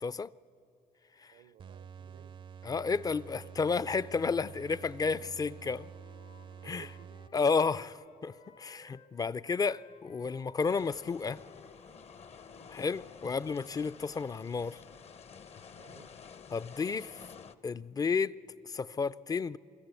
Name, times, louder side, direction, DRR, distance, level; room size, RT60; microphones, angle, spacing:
voice 1, 1.3-2.4 6.6-7.2 7.8-7.9 12.5-12.7 15.8-16.1, right 11 dB, 80° right, 0.7 m, -56 dB
sound 1, 1.6-7.7, right 7 dB, 35° right, 0.4 m, -49 dB
voice 2, 2.6-5.9 6.6-6.9 7.3-7.9 8.2-11.4 12.7-14.8 16.5-17.3 17.6-18.4 18.6-19.6, left 5 dB, 25° left, 0.4 m, -32 dB
Wind instrument woodwind instrument, 4.7-9.1 9.4-14.2, left 5 dB, 70° left, 2.1 m, -61 dB
sound 2, 10.6-17.6, left 6 dB, 45° left, 0.7 m, -51 dB
25.0 x 13.5 x 8.3 m
cardioid pair, 95°, 15 cm